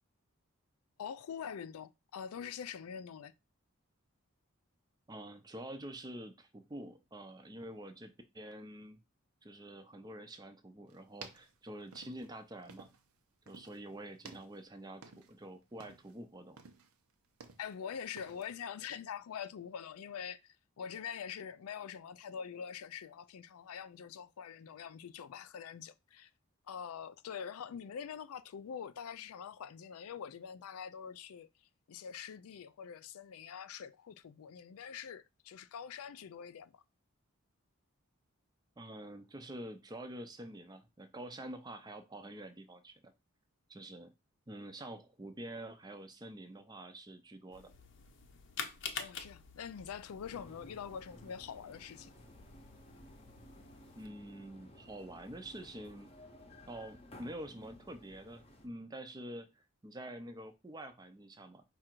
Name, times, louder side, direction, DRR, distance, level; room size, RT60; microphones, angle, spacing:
voice 1, 1.0-3.3 17.6-26.3 26.7-31.5 31.9-36.8 49.0-52.1, left 7 dB, 90° left, 0.4 m, -44 dB
voice 2, 5.1-9.0 9.4-12.9 13.5-16.6 38.8-43.1 43.7-44.1 44.5-47.7 54.0-56.1 56.7-61.6, right 1 dB, 20° right, 0.5 m, -47 dB
sound 1, 10.9-13.2 13.5-13.8 14.2-15.4 15.7-16.2 16.6-17.8 18.2-18.5, right 5 dB, 90° right, 0.7 m, -54 dB
sound 2, 47.5-54.1, left 6 dB, 55° left, 0.6 m, -48 dB
sound 3, 50.2-58.7, left 1 dB, 25° left, 0.7 m, -56 dB
4.8 x 2.5 x 4.4 m
head